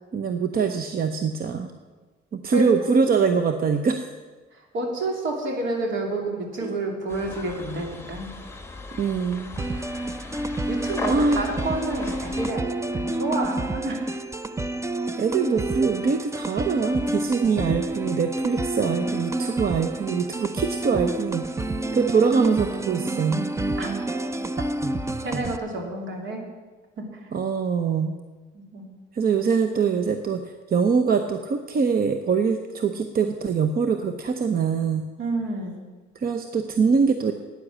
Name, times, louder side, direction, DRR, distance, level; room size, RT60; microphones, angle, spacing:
voice 1, 0.1-1.7 2.3-4.1 6.1-6.2 6.6-6.7 8.9-9.6 11.1-11.5 15.2-21.5 21.9-23.5 27.3-28.2 29.1-35.1 36.1-37.3, right 5 dB, 50° right, 7 dB, 0.8 m, -23 dB
voice 2, 4.5-8.3 10.7-12.7 12.9-14.2 23.8-23.9 24.6-24.7 25.2-26.5 27.0-27.3 28.5-28.9 35.2-35.8, right 2 dB, 75° right, 2 dB, 2.7 m, -29 dB
sound 1, 7.1-12.5, left 3 dB, 15° left, 1.2 m, -37 dB
sound 2, 9.6-25.6, right 2 dB, 15° right, 0.6 m, -29 dB
9.8 x 9.4 x 7.5 m, 1.3 s
cardioid pair, 90°, 20 cm